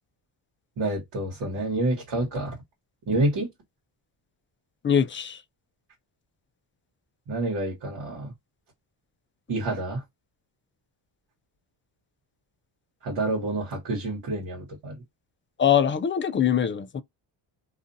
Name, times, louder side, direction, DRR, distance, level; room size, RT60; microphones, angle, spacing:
voice 1, 0.8-2.6 3.1-3.5 7.3-8.3 9.5-10.0 13.0-15.0, right 2 dB, 60° right, 1.3 m, -28 dB
voice 2, 4.8-5.4 15.6-17.0, left 8 dB, 25° left, 0.4 m, -23 dB
2.5 x 2.4 x 2.6 m
cardioid pair, 80°, 48 cm